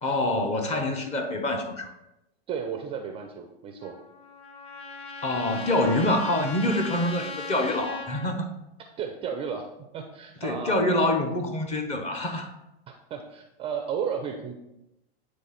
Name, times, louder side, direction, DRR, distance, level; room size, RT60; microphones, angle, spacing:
voice 1, 0.0-1.9 5.2-8.5 10.4-12.5, left 1 dB, 20° left, 5 dB, 0.8 m, -26 dB
voice 2, 2.5-4.0 9.0-9.7 9.9-10.8 12.9-14.5, right 7 dB, 20° right, 4 dB, 0.4 m, -33 dB
Trumpet, 3.8-8.3, left 3 dB, 80° left, 1.0 m, -38 dB
9.1 x 3.3 x 4.1 m, 0.91 s
hypercardioid pair, 130°, 32 cm